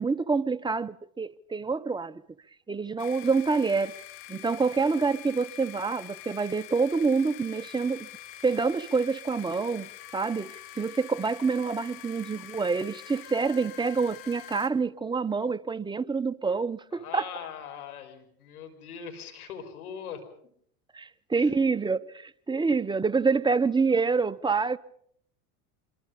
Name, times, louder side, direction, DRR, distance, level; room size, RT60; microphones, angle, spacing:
voice 1, 0.0-2.2 2.7-3.9 4.3-8.1 8.4-17.3 20.9-24.8, right 4 dB, 10° right, 1.1 m, -27 dB
sound 1, 3.0-14.7, left 14 dB, 70° left, 3.4 m, -45 dB
voice 2, 16.9-20.2 21.4-21.6, left 8 dB, 90° left, 5.7 m, -41 dB
27.0 x 23.5 x 5.5 m
hypercardioid pair, 90°, 43 cm